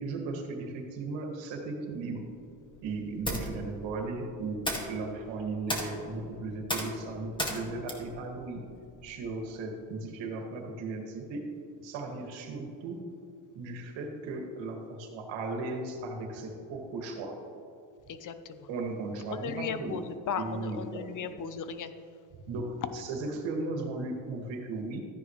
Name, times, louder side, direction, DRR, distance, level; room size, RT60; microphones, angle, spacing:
voice 1, 0.0-2.2 2.8-8.6 9.0-11.5 11.8-13.0 13.5-17.4 18.7-20.0 20.4-21.3 22.5-25.0, right 3 dB, 80° right, 2 dB, 2.1 m, -36 dB
sound 1, 2.6-9.3, equal, 10° left, 1.9 m, -38 dB
voice 2, 18.1-18.7 19.3-21.9, left 6 dB, 45° left, 10 dB, 0.9 m, -36 dB
14.0 x 9.6 x 3.2 m, 2.5 s
cardioid pair, 100°, 44 cm